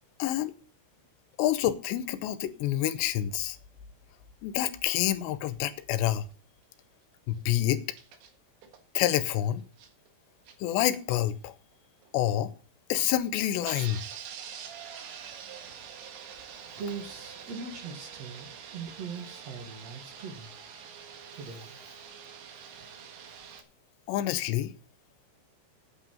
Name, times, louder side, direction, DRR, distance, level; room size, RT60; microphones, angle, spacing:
voice 1, 0.2-0.5 1.4-3.6 4.4-6.3 7.3-7.8 8.9-9.6 10.6-11.6 12.1-12.5 12.9-14.0 24.1-24.7, left 13 dB, 80° left, 3.1 m, -27 dB
sound 1, 4.9-5.0 7.9-8.3 8.6-8.8 9.2-9.3 9.6-10.1 10.5-10.6 11.2-11.3 12.0-12.1 13.1-13.2 13.6-23.6, right 7 dB, 85° right, 3.8 m, -45 dB
voice 2, 16.8-20.5 21.3-21.7, right 5 dB, 45° right, 2.5 m, -40 dB
8.8 x 8.0 x 7.7 m
omnidirectional pair, 5.1 m